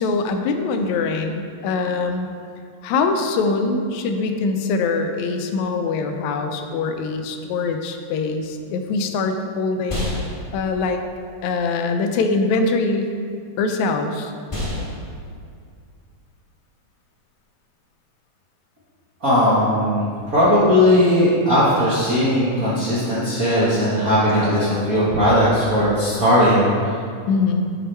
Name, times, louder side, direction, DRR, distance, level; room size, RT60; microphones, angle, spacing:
voice 1, 0.0-2.3 2.8-10.1 10.5-11.0 11.4-13.1 13.6-14.3 27.3-27.7, left 4 dB, 80° left, 5 dB, 1.9 m, -23 dB
sound 1, 8.8-18.1, left 1 dB, 20° left, 0.8 m, -34 dB
voice 2, 19.2-26.7, equal, 55° right, -11 dB, 1.0 m, -18 dB
7.1 x 4.6 x 4.3 m, 2.3 s
omnidirectional pair, 3.3 m